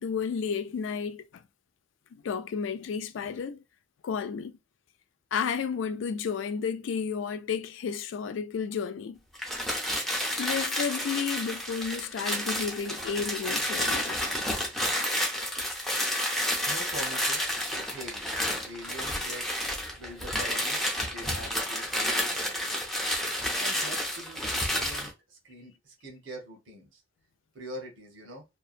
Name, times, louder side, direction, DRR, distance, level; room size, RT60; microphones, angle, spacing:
voice 1, 0.0-1.4 2.1-3.6 4.0-4.5 5.3-9.2 10.4-14.4, left 6 dB, 80° left, 0.3 m, -32 dB
sound 1, 9.3-25.1, equal, ahead, 0.5 m, -30 dB
voice 2, 16.7-19.5 19.9-23.1 23.6-27.0 27.5-28.5, right 1 dB, 80° right, 0.8 m, -44 dB
2.7 x 2.2 x 2.4 m
head